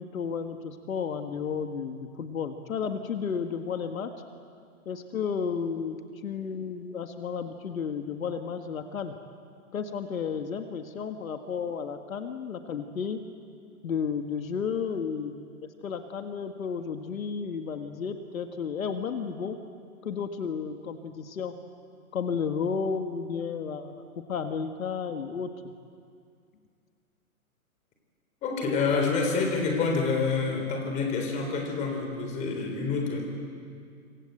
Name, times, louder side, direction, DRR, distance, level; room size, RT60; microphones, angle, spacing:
voice 1, 0.0-4.1 4.9-9.2 9.7-13.2 13.8-15.4 15.8-19.6 20.0-21.6 22.1-24.0 24.3-25.7, left 6 dB, 70° left, 6 dB, 1.8 m, -32 dB
voice 2, 28.4-33.2, left 4 dB, 15° left, 3 dB, 3.9 m, -27 dB
26.0 x 24.5 x 8.0 m, 2.3 s
hypercardioid pair, 165°, 43 cm